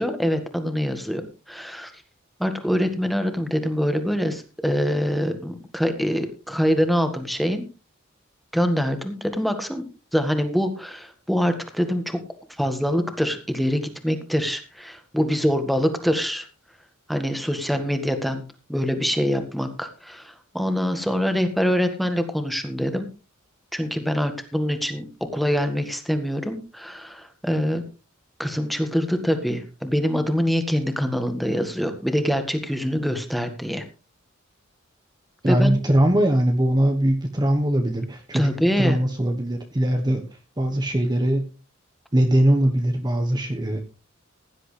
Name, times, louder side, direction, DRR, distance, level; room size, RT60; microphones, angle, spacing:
voice 1, 0.0-1.9 2.4-7.7 8.5-9.8 10.1-12.2 12.6-16.5 17.1-18.4 18.7-23.1 23.7-25.0 25.3-27.8 28.4-33.8 35.5-35.8 38.3-39.0, equal, ahead, 7 dB, 1.7 m, -24 dB
voice 2, 35.4-38.5 38.8-40.2 40.6-41.5 42.1-43.8, right 1 dB, 20° right, 4 dB, 1.1 m, -21 dB
16.0 x 11.0 x 3.3 m, 0.31 s
head